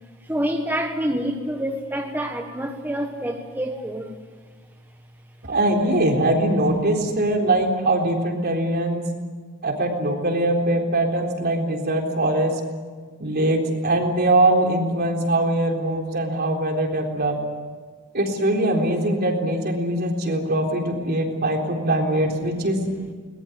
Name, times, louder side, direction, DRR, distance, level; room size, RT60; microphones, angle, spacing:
voice 1, 0.3-4.2 7.2-7.3, equal, 10° right, 3 dB, 1.4 m, -27 dB
voice 2, 5.5-9.1 9.6-12.6 13.2-17.4 18.1-22.8, right 1 dB, 50° right, 2 dB, 3.8 m, -22 dB
22.0 x 20.0 x 9.7 m, 1.5 s
head